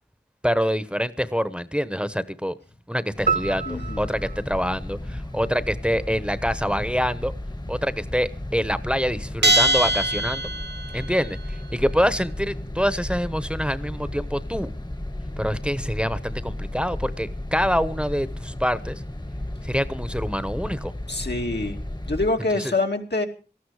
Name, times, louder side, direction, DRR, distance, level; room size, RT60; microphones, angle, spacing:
voice 1, 0.4-2.5 2.9-7.3 7.7-10.5 10.9-14.7 15.4-19.0 19.6-20.9 22.6-22.7, equal, 5° right, 14 dB, 1.0 m, -26 dB
sound 1, 3.1-22.3, left 1 dB, 25° left, 1.2 m, -34 dB
sound 2, 3.3-5.7, right 5 dB, 55° right, 1.2 m, -30 dB
voice 2, 3.7-4.0 21.1-21.8 22.0-23.3, left 2 dB, 75° left, 3 dB, 2.5 m, -25 dB
Bell, 9.4-11.0, right 1 dB, 80° right, 1.1 m, -21 dB
18.5 x 14.0 x 4.9 m, 0.37 s
wide cardioid pair, 45°, 17 cm